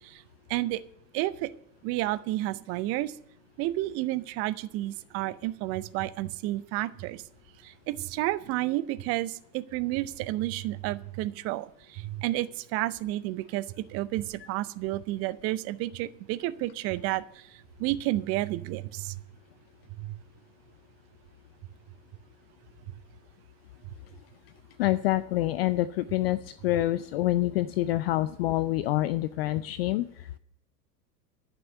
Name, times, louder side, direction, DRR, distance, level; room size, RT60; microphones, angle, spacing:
voice 1, 0.5-0.8 1.1-1.5 1.8-3.1 3.6-7.2 7.9-11.7 11.9-13.6 13.9-17.2 17.8-19.1 20.0-20.1, right 16 dB, 30° right, 16 dB, 0.5 m, -30 dB
voice 2, 24.8-30.4, left 15 dB, 40° left, 15 dB, 0.4 m, -27 dB
11.0 x 6.1 x 9.1 m, 0.71 s
figure-of-eight pair, 90°, 49 cm